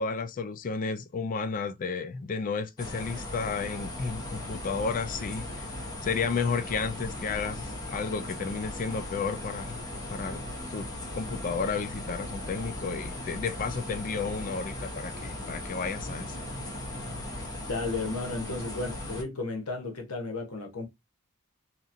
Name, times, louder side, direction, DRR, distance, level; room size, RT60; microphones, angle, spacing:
voice 1, 0.0-5.7 6.0-9.8 10.1-16.4, left 5 dB, 40° left, 0.3 m, -32 dB
sound 1, 2.8-19.2, left 1 dB, 15° left, 0.7 m, -38 dB
voice 2, 17.7-20.9, left 3 dB, 75° left, 0.8 m, -33 dB
2.9 x 2.4 x 2.5 m
head